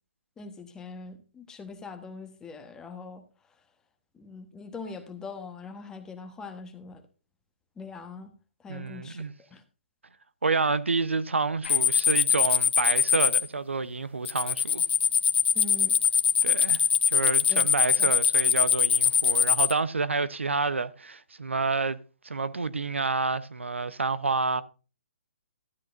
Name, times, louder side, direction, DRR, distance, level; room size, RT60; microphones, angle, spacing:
voice 1, 0.4-3.2 4.1-7.0 7.8-8.3 8.6-9.2 9.5-9.6 15.5-15.9 17.5-17.7 18.0-18.1, left 4 dB, 10° left, 1.1 m, -42 dB
voice 2, 8.7-9.3 10.4-14.8 16.4-22.0 22.2-24.6, right 4 dB, 90° right, 0.7 m, -29 dB
sound 1, 11.6-13.4 14.3-19.7, left 7 dB, 60° left, 1.0 m, -23 dB
13.0 x 10.5 x 2.5 m
hypercardioid pair, 145°, 6 cm